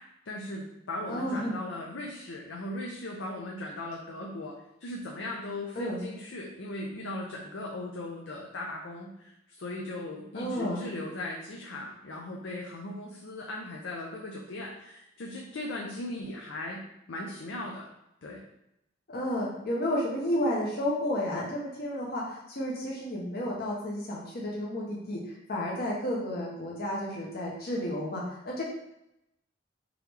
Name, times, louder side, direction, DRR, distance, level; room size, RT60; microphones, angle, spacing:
voice 1, 0.3-4.5 4.8-16.8 17.1-17.9 18.2-18.4, left 1 dB, 85° left, -1 dB, 0.6 m, -38 dB
voice 2, 1.1-1.6 5.8-6.0 10.3-10.8 19.1-28.6, equal, 55° left, -3 dB, 0.8 m, -32 dB
3.8 x 3.0 x 3.3 m, 0.82 s
head